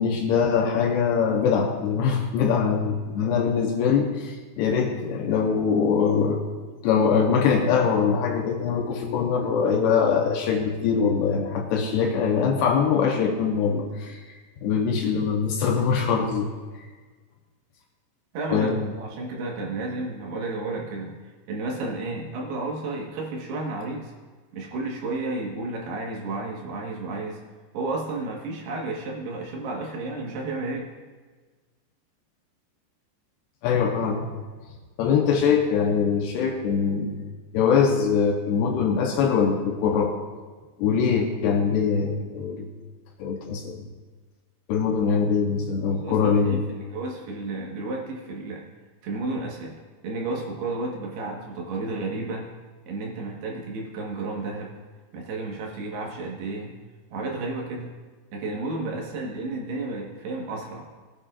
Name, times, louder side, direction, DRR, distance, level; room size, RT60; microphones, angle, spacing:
voice 1, 0.0-6.4 6.8-14.2 14.6-16.5 18.5-18.8 33.6-34.4 35.0-37.3 37.5-40.1 40.8-42.7 43.2-43.9 44.7-46.6, left 6 dB, 75° left, 1 dB, 2.7 m, -23 dB
voice 2, 18.3-24.1 24.5-27.4 27.7-30.9 45.9-48.6 49.0-49.8 50.0-52.5 52.9-54.8 55.1-56.7 57.1-57.9 58.3-60.9, right 2 dB, 65° right, -1 dB, 3.3 m, -32 dB
19.5 x 9.8 x 2.5 m, 1.4 s
omnidirectional pair, 5.3 m